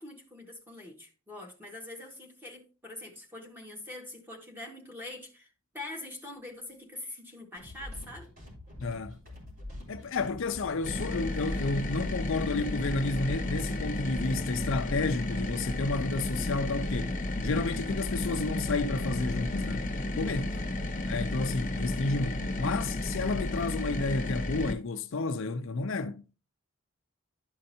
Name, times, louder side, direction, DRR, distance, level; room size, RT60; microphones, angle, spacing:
voice 1, 0.0-5.5 5.7-8.3 20.3-20.7, left 2 dB, 10° right, 1.7 m, -44 dB
sound 1, 7.6-14.7, left 1 dB, 40° right, 3.9 m, -46 dB
voice 2, 8.8-9.2 9.9-17.2 17.4-19.9 20.2-20.6 21.1-26.3, left 3 dB, 60° left, 0.5 m, -31 dB
sound 2, 10.8-24.7, left 1 dB, 35° left, 0.9 m, -33 dB
12.0 x 5.4 x 2.8 m
head